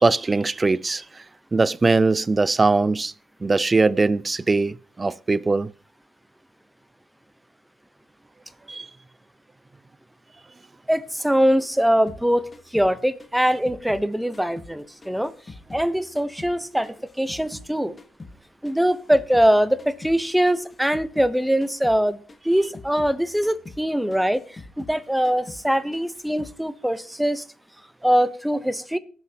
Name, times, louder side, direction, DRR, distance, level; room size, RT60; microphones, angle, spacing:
voice 1, 0.0-1.0 1.5-3.1 3.4-5.7 8.7-8.9, right 3 dB, 25° right, 0.5 m, -21 dB
voice 2, 10.9-15.3 15.7-17.9 18.6-22.2 22.4-24.4 24.8-27.4 28.0-29.0, equal, 5° right, 0.9 m, -22 dB
sound 1, 12.1-14.8 15.0-17.7 18.0-21.4 21.6-22.0 22.3-25.0 25.2-25.7 25.9-26.6, left 2 dB, 25° left, 1.5 m, -44 dB
19.0 x 7.6 x 2.9 m
cardioid pair, 90°, 0 cm